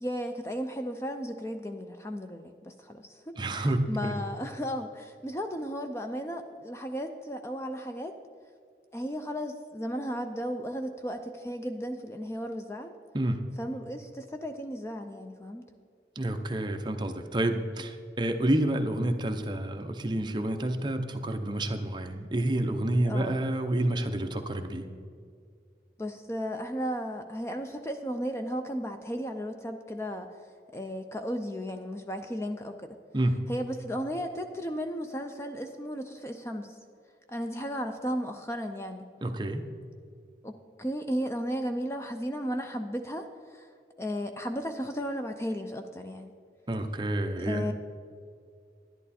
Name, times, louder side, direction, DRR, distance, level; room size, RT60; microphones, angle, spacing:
voice 1, 0.0-8.2 8.9-13.0 13.6-15.6 23.0-23.4 26.0-30.3 30.7-33.0 33.5-36.8 37.3-39.1 40.4-43.7 44.0-46.3 47.4-47.7, equal, 15° left, 6 dB, 0.4 m, -35 dB
voice 2, 3.4-4.2 13.1-13.4 16.2-24.9 33.1-33.4 39.2-39.7 46.7-47.6, right 1 dB, 25° right, 6 dB, 0.7 m, -29 dB
11.0 x 11.0 x 4.2 m, 2.2 s
head